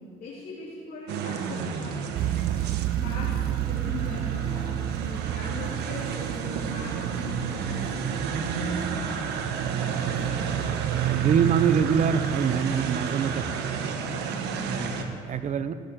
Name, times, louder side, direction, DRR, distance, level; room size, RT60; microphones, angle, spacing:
voice 1, 0.0-2.3 3.0-9.5 9.8-11.7 14.3-15.0, left 2 dB, 65° left, -6 dB, 3.3 m, -41 dB
sound 1, 1.1-15.0, right 5 dB, 80° right, 1.3 m, -32 dB
sound 2, 2.1-12.6, right 13 dB, 65° right, 0.4 m, -30 dB
sound 3, 3.0-11.5, right 2 dB, 25° right, 1.3 m, -41 dB
voice 2, 11.0-13.6 13.9-14.0 14.7-15.7, right 7 dB, 45° right, 12 dB, 0.7 m, -25 dB
15.5 x 7.7 x 6.8 m, 2.1 s
cardioid pair, 110°, 17 cm